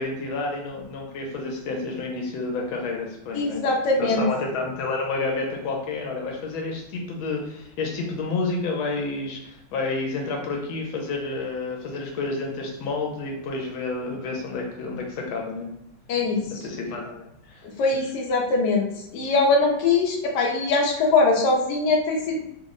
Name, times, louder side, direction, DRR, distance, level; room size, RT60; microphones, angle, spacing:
voice 1, 0.0-3.6 4.0-15.7 16.6-17.6 17.9-18.1, left 3 dB, 85° left, 0 dB, 1.5 m, -30 dB
voice 2, 3.3-4.2 16.1-16.4 17.6-18.9 19.1-22.4, left 3 dB, 65° left, 0 dB, 1.2 m, -22 dB
3.6 x 2.1 x 3.6 m, 0.81 s
omnidirectional pair, 2.2 m